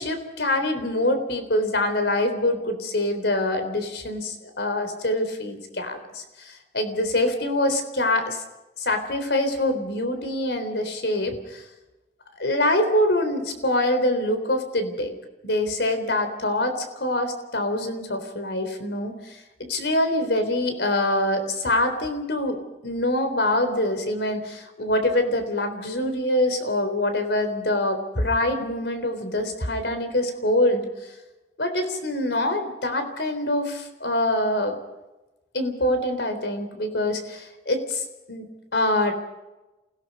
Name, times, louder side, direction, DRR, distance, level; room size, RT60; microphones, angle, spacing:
voice 1, 0.0-8.4 8.8-11.6 12.3-15.1 15.4-19.4 19.7-22.6 22.8-30.8 31.6-34.8 35.5-38.5 38.7-39.1, left 1 dB, 80° left, 8 dB, 3.8 m, -25 dB
28.0 x 17.5 x 5.5 m, 1.0 s
head